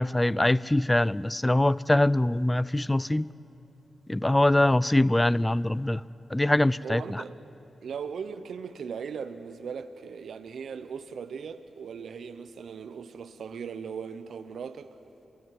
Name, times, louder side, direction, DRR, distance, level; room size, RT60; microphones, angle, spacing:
voice 1, 0.0-3.3 4.1-6.0 6.3-7.2, left 1 dB, 15° left, 0.5 m, -23 dB
voice 2, 6.8-7.3 7.8-14.9, right 6 dB, 80° right, 0.9 m, -38 dB
27.5 x 16.5 x 9.5 m
cardioid pair, 55°, 0 cm